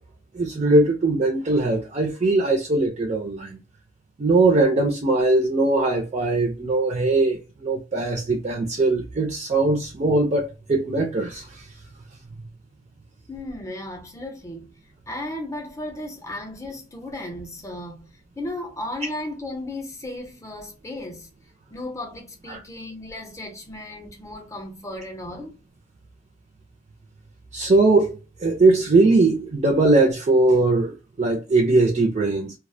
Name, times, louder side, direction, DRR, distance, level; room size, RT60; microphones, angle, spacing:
voice 1, 0.3-3.6 4.2-11.5 22.5-22.6 27.5-32.5, right 2 dB, 35° right, 0.4 m, -20 dB
voice 2, 13.3-14.7 15.1-21.3 21.7-25.6, left 1 dB, 15° left, 0.6 m, -35 dB
2.3 x 2.1 x 2.5 m
head